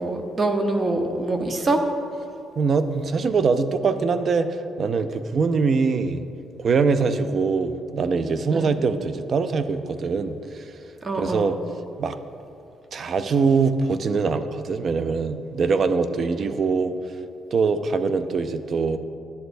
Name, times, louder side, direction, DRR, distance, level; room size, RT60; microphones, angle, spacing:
voice 1, 0.0-1.8 8.5-8.7 11.0-11.5, right 2 dB, 35° right, 4 dB, 0.8 m, -24 dB
voice 2, 2.6-6.2 6.6-10.7 11.2-11.6 12.0-12.2 12.9-17.0 17.5-19.0, right 4 dB, 50° right, 11 dB, 0.4 m, -23 dB
11.0 x 8.0 x 2.6 m, 2.7 s
cardioid pair, 90°, 0 cm